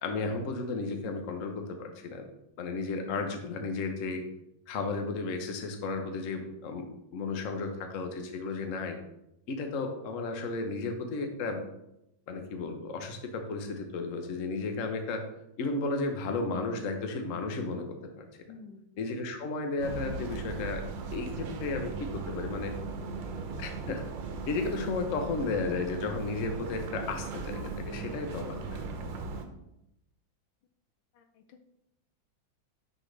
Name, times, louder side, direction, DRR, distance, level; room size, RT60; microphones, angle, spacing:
voice 1, 0.0-2.2 2.6-4.2 4.7-6.9 7.1-9.0 9.5-11.6 12.3-15.2 15.6-18.2 19.0-20.8 21.1-22.7 23.6-24.0 24.5-28.7, left 3 dB, 50° left, 5 dB, 1.1 m, -33 dB
voice 2, 18.5-18.9 31.1-31.6, left 4 dB, 80° left, 7 dB, 1.4 m, -51 dB
sound 1, 19.8-29.5, right 4 dB, 75° right, 1.6 m, -38 dB
9.9 x 5.2 x 3.3 m, 0.84 s
omnidirectional pair, 2.2 m